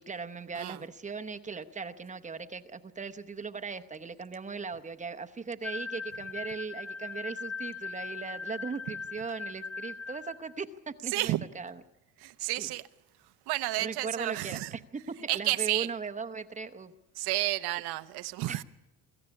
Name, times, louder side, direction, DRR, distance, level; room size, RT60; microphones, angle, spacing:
voice 1, 0.0-11.8 12.6-12.7 13.8-16.9 18.5-18.6, right 5 dB, 20° right, 0.8 m, -38 dB
sound 1, 5.6-10.5, left 4 dB, 40° left, 1.6 m, -39 dB
voice 2, 11.1-11.4 12.2-12.9 13.5-14.7 15.3-15.9 17.2-18.6, right 17 dB, 75° right, 0.9 m, -31 dB
23.5 x 14.5 x 9.8 m
cardioid pair, 140°, 39 cm